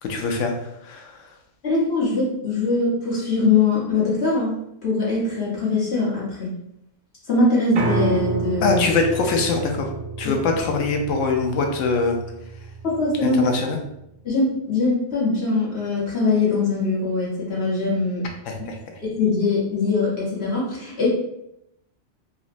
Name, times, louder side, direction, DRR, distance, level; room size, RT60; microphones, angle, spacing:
voice 1, 0.0-1.3 8.6-9.9 10.2-12.2 13.2-13.8 18.5-19.0, left 3 dB, 85° left, 3 dB, 0.9 m, -23 dB
voice 2, 1.6-6.5 7.3-8.8 10.2-10.4 12.8-13.4 14.2-18.3 19.0-21.1, left 3 dB, 60° left, -6 dB, 1.2 m, -22 dB
Piano, 7.8-13.9, right 4 dB, 65° right, 0.7 m, -30 dB
3.9 x 2.1 x 2.5 m, 0.80 s
omnidirectional pair, 1.3 m